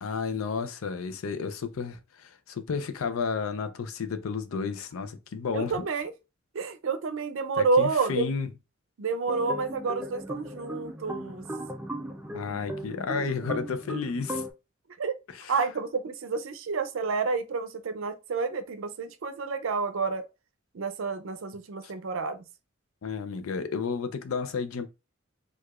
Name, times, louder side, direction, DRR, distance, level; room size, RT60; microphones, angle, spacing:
voice 1, 0.0-5.9 7.5-8.5 12.3-14.4 15.3-15.5 23.0-24.9, left 5 dB, 90° left, 0.5 m, -32 dB
voice 2, 5.5-6.1 6.5-8.3 9.0-11.5 15.0-15.1 15.5-20.2 20.7-22.4, right 4 dB, 70° right, 0.5 m, -29 dB
sound 1, 9.3-14.5, equal, 10° right, 0.3 m, -37 dB
4.7 x 2.4 x 2.3 m
head